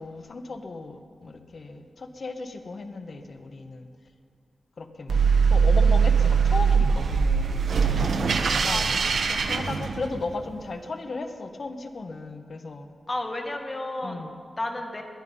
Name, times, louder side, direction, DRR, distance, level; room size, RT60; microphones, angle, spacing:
voice 1, 0.0-3.9 4.8-5.2 5.5-8.1 8.6-8.9 9.3-12.9 14.0-14.4, left 3 dB, 50° left, 6 dB, 1.2 m, -36 dB
sound 1, 5.1-10.4, right 5 dB, 75° right, 1.0 m, -21 dB
voice 2, 8.7-9.1 13.1-14.3 14.6-15.0, left 2 dB, 25° left, 3 dB, 1.8 m, -32 dB
21.0 x 10.5 x 5.5 m, 2.2 s
wide cardioid pair, 115°, 0 cm